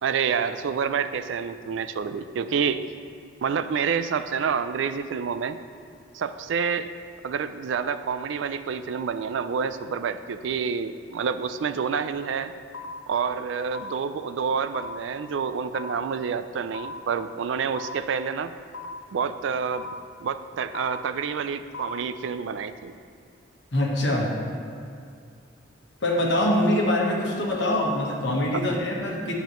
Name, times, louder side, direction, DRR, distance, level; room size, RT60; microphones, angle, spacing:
voice 1, 0.0-2.8 3.4-5.6 6.1-6.9 7.2-12.5 13.1-18.5 19.1-19.9 20.2-22.9 28.5-28.6, right 6 dB, 75° right, 12 dB, 0.3 m, -28 dB
sound 1, 12.7-12.8 13.7-13.8 14.7-14.8 15.7-15.8 16.7-16.8 17.7-17.8 18.7-18.8 19.7-19.8 20.7-20.8 21.7-21.8, left 6 dB, 85° left, 0.7 m, -37 dB
voice 2, 23.7-24.3 26.0-29.3, left 1 dB, 65° left, -1 dB, 1.3 m, -24 dB
9.9 x 6.9 x 3.1 m, 2.4 s
head